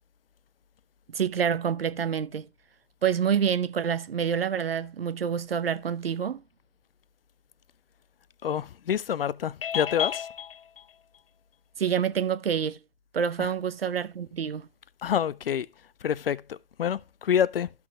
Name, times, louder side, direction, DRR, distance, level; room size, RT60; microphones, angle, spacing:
voice 1, 1.1-2.5 3.0-6.4 11.8-12.8 13.1-14.7, right 8 dB, 70° right, 0.8 m, -27 dB
voice 2, 8.4-10.8 13.4-13.5 15.0-15.7 16.0-17.7, left 9 dB, 70° left, 0.5 m, -27 dB
13.0 x 5.9 x 2.3 m
figure-of-eight pair, 105°, 30 cm